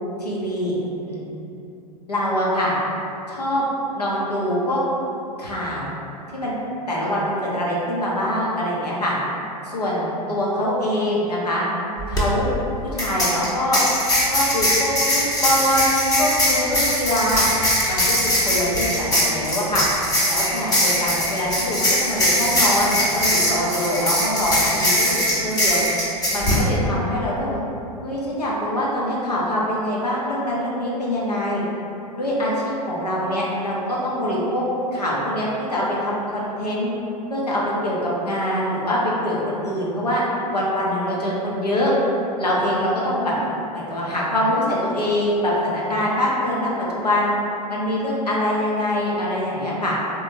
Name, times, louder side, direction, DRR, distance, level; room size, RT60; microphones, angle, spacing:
voice 1, 0.2-0.8 1.1-1.2 2.1-2.7 3.3-3.7 3.9-4.8 5.4-5.9 6.3-6.5 6.9-9.1 9.6-11.6 12.1-12.5 12.9-13.8 14.2-14.9 15.4-17.5 17.9-19.9 20.3-25.8 26.3-27.6 28.0-31.6 32.2-34.7 34.9-36.9 37.3-40.2 40.5-41.9 42.4-43.3 43.7-47.3 47.7-49.9, left 1 dB, 80° left, -5 dB, 0.8 m, -24 dB
sound 1, 12.0-12.2 13.0-26.6, equal, 20° left, 0.8 m, -21 dB
3.4 x 3.1 x 2.6 m, 2.9 s
figure-of-eight pair, 95°, 20 cm